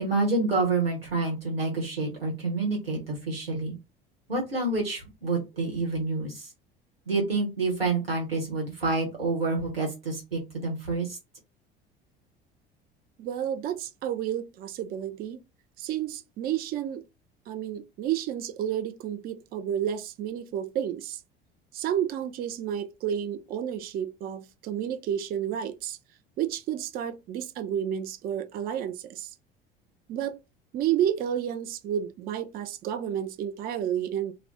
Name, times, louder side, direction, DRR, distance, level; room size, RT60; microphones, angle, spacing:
voice 1, 0.0-3.7 4.3-6.5 7.1-11.2, right 3 dB, 90° right, 1.0 m, -28 dB
voice 2, 13.2-15.4 15.8-17.0 17.5-21.2 21.7-26.0 26.4-29.3 30.1-30.4 30.7-34.3, right 10 dB, 35° right, 0.4 m, -31 dB
2.4 x 2.1 x 3.5 m
figure-of-eight pair, 65°, 29 cm